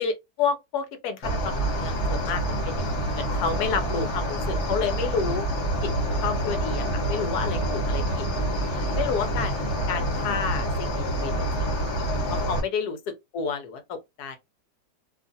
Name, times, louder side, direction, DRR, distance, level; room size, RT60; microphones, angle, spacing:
voice 1, 0.0-5.5 5.8-5.9 6.2-8.3 8.9-11.3 11.6-11.7 12.0-14.4, left 6 dB, 75° left, 1.1 m, -30 dB
Cricket, 1.2-12.6, right 1 dB, 45° left, 1.3 m, -27 dB
2.7 x 2.4 x 2.6 m
omnidirectional pair, 1.8 m